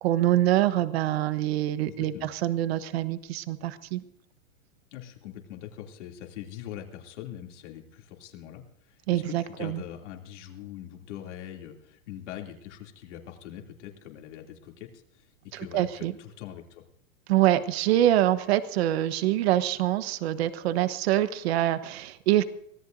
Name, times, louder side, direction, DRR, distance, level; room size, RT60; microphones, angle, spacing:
voice 1, 0.0-4.0 9.1-9.8 15.5-16.1 17.3-22.4, right 13 dB, 50° right, 12 dB, 1.1 m, -25 dB
voice 2, 1.9-2.3 4.9-15.3 15.5-16.8, left 11 dB, 60° left, 2 dB, 2.9 m, -43 dB
24.5 x 17.0 x 2.7 m, 0.74 s
supercardioid pair, 165°, 40 cm